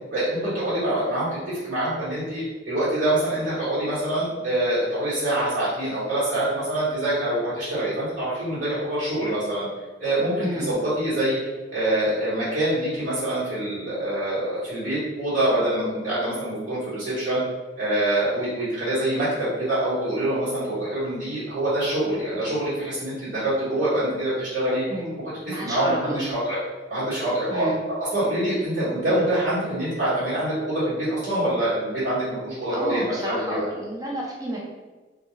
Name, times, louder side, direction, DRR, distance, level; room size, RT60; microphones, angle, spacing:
voice 1, 0.1-9.7 10.0-11.4 11.7-17.4 17.8-24.8 25.4-26.6 26.9-27.7 28.1-33.6, right 1 dB, 45° right, -12 dB, 1.2 m, -25 dB
voice 2, 10.4-10.7 24.9-25.1 25.5-26.3 27.5-27.8 32.7-34.7, right 1 dB, 20° right, -3 dB, 0.4 m, -30 dB
2.3 x 2.3 x 3.0 m, 1.2 s
head